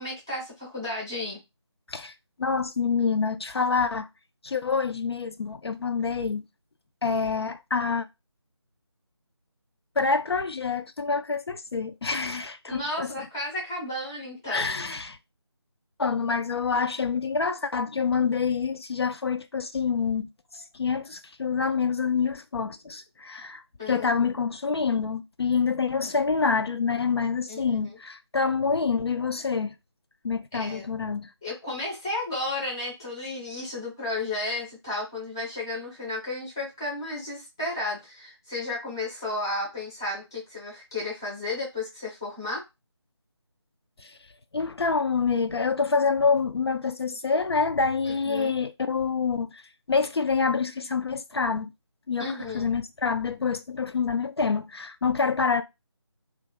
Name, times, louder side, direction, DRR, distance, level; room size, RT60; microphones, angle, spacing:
voice 1, 0.0-1.4 12.7-14.7 23.8-24.4 27.5-27.9 30.5-30.8 31.4-42.6 48.1-48.5 52.2-52.7, left 2 dB, 5° left, 0.5 m, -33 dB
voice 2, 2.4-4.1 4.4-6.5 7.0-8.1 10.0-13.1 14.5-15.2 16.0-20.3 20.5-29.7 30.2-31.3 44.0-44.2 44.5-49.6 49.9-51.7 52.1-55.6, left 5 dB, 60° left, 0.4 m, -27 dB
2.8 x 2.3 x 3.5 m
figure-of-eight pair, 165°, 15 cm